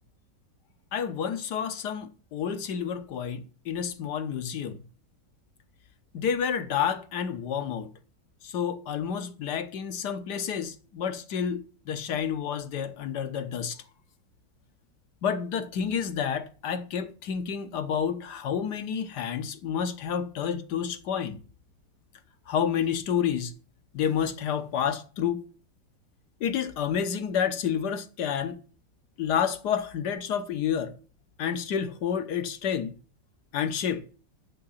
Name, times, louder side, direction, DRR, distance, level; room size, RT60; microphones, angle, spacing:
voice 1, 0.9-4.8 6.1-7.9 8.4-13.8 15.2-21.4 22.5-23.5 23.9-25.4 26.4-28.6 29.2-30.9 31.4-33.0 33.5-34.0, left 8 dB, 65° left, 1.5 m, -29 dB
7.8 x 6.5 x 7.2 m
omnidirectional pair, 2.0 m